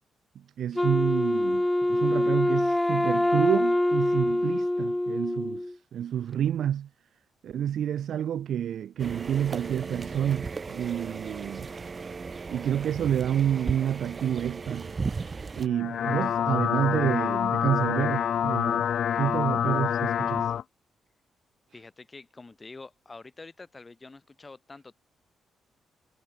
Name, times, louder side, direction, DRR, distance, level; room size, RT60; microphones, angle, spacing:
voice 1, 0.4-6.9 7.4-11.7 12.5-18.9 19.1-20.5, right 10 dB, 70° right, 0.5 m, -29 dB
Wind instrument woodwind instrument, 0.8-5.7, left 1 dB, 10° left, 0.6 m, -25 dB
sound 1, 9.0-15.7, right 4 dB, 35° right, 0.8 m, -36 dB
sound 2, 15.7-20.6, left 9 dB, 65° left, 0.7 m, -27 dB
voice 2, 21.7-24.9, left 3 dB, 25° left, 6.3 m, -46 dB
cardioid pair, 105°, 0 cm